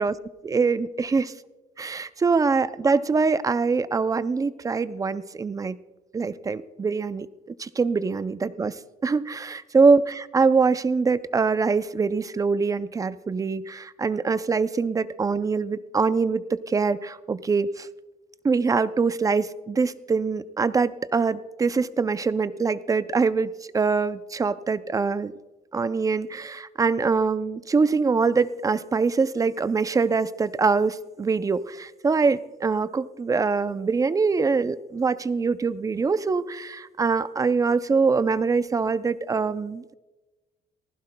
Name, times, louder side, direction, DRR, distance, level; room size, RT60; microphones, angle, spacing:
voice 1, 0.4-1.3 1.8-5.8 6.1-7.3 7.6-8.7 9.0-17.9 18.4-25.3 25.7-39.9, right 4 dB, 20° right, 15 dB, 0.4 m, -24 dB
19.0 x 15.5 x 2.2 m, 1.2 s
cardioid pair, 110°, 17 cm